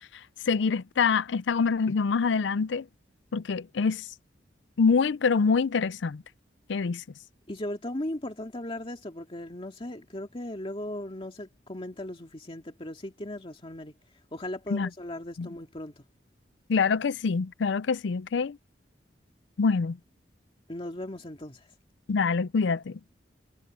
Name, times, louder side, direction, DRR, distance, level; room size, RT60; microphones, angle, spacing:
voice 1, 0.5-2.9 3.3-4.1 4.8-6.2 6.7-7.0 14.7-14.9 15.4-15.5 16.7-18.6 19.6-20.0 22.1-23.0, left 5 dB, 85° left, 0.5 m, -25 dB
voice 2, 7.5-13.9 14.3-16.0 20.7-21.7, left 1 dB, 30° left, 2.2 m, -37 dB
head